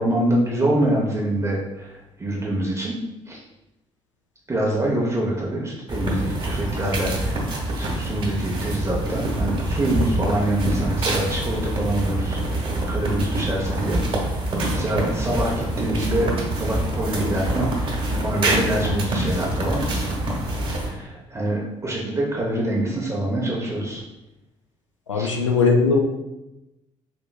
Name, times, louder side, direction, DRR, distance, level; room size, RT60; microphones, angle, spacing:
voice 1, 0.0-3.0 3.3-3.4 4.5-14.0 14.7-16.3 16.6-19.8 20.7-24.0 25.1-25.3, right 1 dB, 20° right, -4 dB, 0.7 m, -25 dB
sound 1, 5.9-20.9, right 1 dB, 35° right, 1.2 m, -25 dB
voice 2, 25.1-26.0, left 4 dB, 85° left, 1 dB, 0.4 m, -19 dB
4.3 x 2.9 x 2.3 m, 0.94 s
figure-of-eight pair, 45°, 15 cm